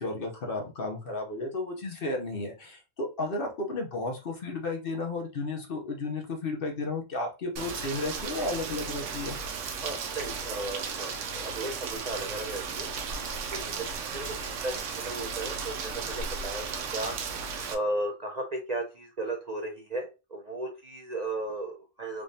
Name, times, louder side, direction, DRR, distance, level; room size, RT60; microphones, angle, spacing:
voice 1, 0.0-9.4, left 2 dB, 50° left, 2 dB, 0.9 m, -33 dB
Rain, 7.6-17.7, right 5 dB, 75° right, 0.9 m, -35 dB
voice 2, 9.8-12.9 13.5-16.6 16.9-17.1 17.7-22.2, right 2 dB, 45° right, 0 dB, 0.6 m, -35 dB
3.5 x 3.1 x 2.6 m, 0.28 s
omnidirectional pair, 1.3 m